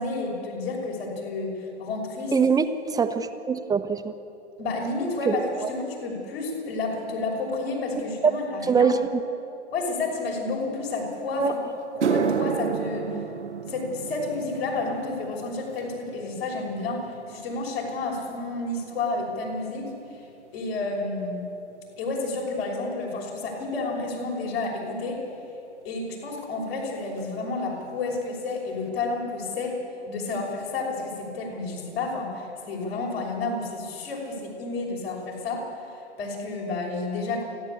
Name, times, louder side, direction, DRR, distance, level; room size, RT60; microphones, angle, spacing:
voice 1, 0.0-2.4 4.6-9.0 9.7-11.5 11.9-13.2 13.7-19.8 20.5-21.5 22.0-25.2 25.8-35.7 36.2-37.4, left 3 dB, 60° left, -1 dB, 5.9 m, -30 dB
voice 2, 2.3-4.1 5.3-5.7 8.2-8.3 8.6-9.2 11.4-11.5, right 5 dB, 10° right, 9 dB, 0.9 m, -23 dB
sound 1, 11.3-11.4 11.8-20.3 20.6-21.0 21.8-21.9 24.6-24.7 26.4-26.5 26.7-26.9 27.2-27.7 28.1-28.2 28.7-28.8, right 6 dB, 85° right, 1.0 m, -33 dB
29.0 x 11.5 x 8.5 m, 2.9 s
figure-of-eight pair, 105°, 34 cm